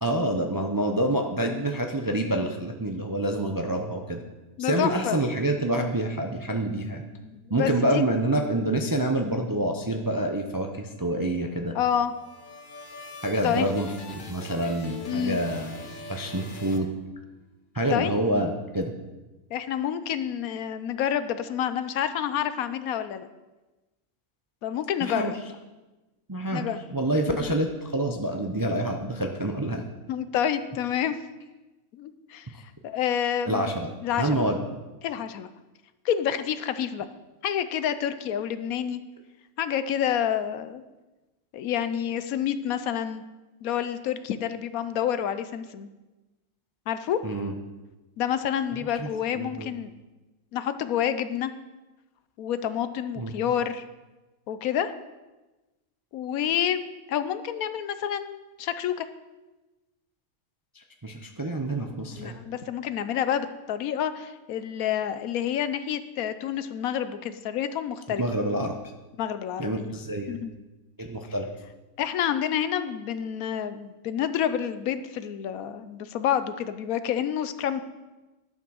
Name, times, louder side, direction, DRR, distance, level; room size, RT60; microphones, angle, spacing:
voice 1, 0.0-4.2 4.6-7.0 7.5-11.8 13.2-15.8 16.1-16.9 17.7-18.9 25.0-25.3 26.3-29.9 33.5-33.9 34.2-34.6 47.2-47.5 48.7-49.1 49.4-49.7 53.2-53.3 60.7-62.4 68.2-68.8 69.6-70.4 71.0-71.5, right 1 dB, 25° right, 3 dB, 0.4 m, -27 dB
voice 2, 4.6-5.2 7.2-8.0 11.7-12.1 13.4-13.7 15.1-15.4 17.9-18.2 19.5-23.3 24.6-25.4 26.5-26.8 27.3-27.4 30.1-31.2 31.9-32.5 32.8-33.7 34.0-34.4 35.0-35.5 36.0-37.1 37.4-39.0 39.6-40.8 41.5-43.2 43.6-45.9 46.9-47.2 48.2-49.9 50.5-51.5 52.4-53.8 54.5-54.9 56.1-56.8 57.1-59.1 62.2-68.2 69.2-69.9 70.3-70.5 72.0-77.8, left 9 dB, 80° left, 12 dB, 1.1 m, -28 dB
sound 1, 11.9-17.5, left 3 dB, 40° left, 1.0 m, -42 dB
11.0 x 6.0 x 6.3 m, 1.1 s
omnidirectional pair, 1.5 m